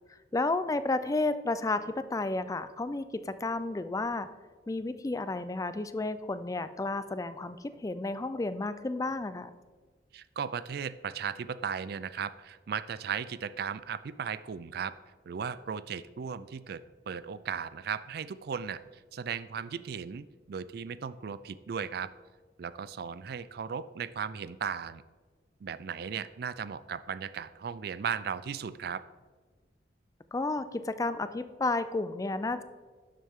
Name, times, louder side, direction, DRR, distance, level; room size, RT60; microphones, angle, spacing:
voice 1, 0.3-4.3 4.7-9.5 30.3-32.6, left 2 dB, 20° left, 12 dB, 0.4 m, -32 dB
voice 2, 10.1-14.9 15.3-18.8 19.1-22.1 22.6-25.0 25.6-29.0, right 7 dB, 60° right, 16 dB, 0.4 m, -36 dB
12.0 x 7.5 x 3.6 m, 1.4 s
head